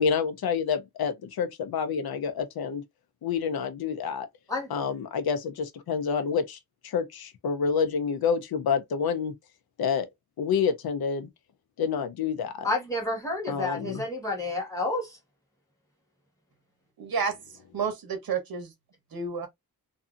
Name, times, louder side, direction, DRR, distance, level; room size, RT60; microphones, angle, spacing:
voice 1, 0.0-2.8 3.2-4.3 4.7-6.6 6.8-9.3 9.8-10.1 10.4-11.3 11.8-12.7 13.5-14.0, left 6 dB, 85° left, 0.6 m, -28 dB
voice 2, 12.6-15.1, left 2 dB, 10° left, 1.5 m, -30 dB
voice 3, 17.0-17.4 17.7-18.7 19.1-19.5, right 5 dB, 80° right, 0.9 m, -30 dB
2.7 x 2.6 x 2.4 m
wide cardioid pair, 135°, 36 cm